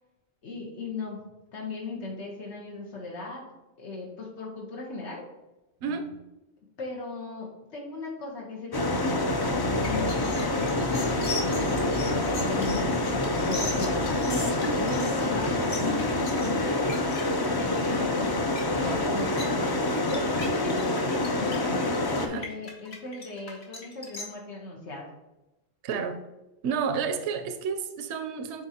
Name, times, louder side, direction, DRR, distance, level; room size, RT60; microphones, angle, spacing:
voice 1, 0.4-1.2 1.5-3.5 3.8-5.2 6.8-9.6 9.8-14.0 14.2-16.8 17.5-18.3 18.7-19.7 20.1-21.8 22.1-25.1, left 3 dB, 90° left, -1 dB, 1.3 m, -37 dB
voice 2, 5.8-6.2 22.2-22.4 25.8-26.2 26.6-28.7, right 6 dB, 80° right, 7 dB, 0.9 m, -30 dB
sound 1, 8.7-22.3, left 2 dB, 40° left, 0.3 m, -27 dB
sound 2, 9.8-24.2, left 3 dB, 70° left, 1.3 m, -39 dB
9.1 x 3.8 x 2.8 m, 0.99 s
omnidirectional pair, 1.1 m